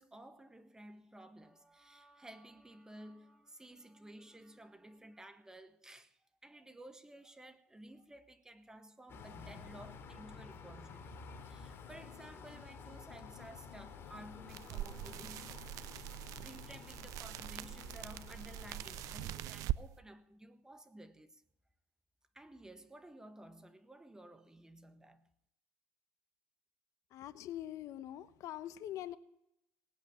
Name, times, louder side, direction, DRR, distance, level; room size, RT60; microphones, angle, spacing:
voice 1, 0.0-11.2 11.4-16.1 16.4-21.4 22.3-25.3, right 1 dB, 10° right, 1.5 m, -54 dB
sound 1, 9.1-19.5, left 6 dB, 40° left, 3.3 m, -51 dB
sound 2, 14.5-19.8, right 15 dB, 60° right, 0.6 m, -42 dB
voice 2, 27.1-29.2, left 12 dB, 55° left, 1.0 m, -44 dB
18.5 x 8.6 x 8.9 m
supercardioid pair, 100°, 6 cm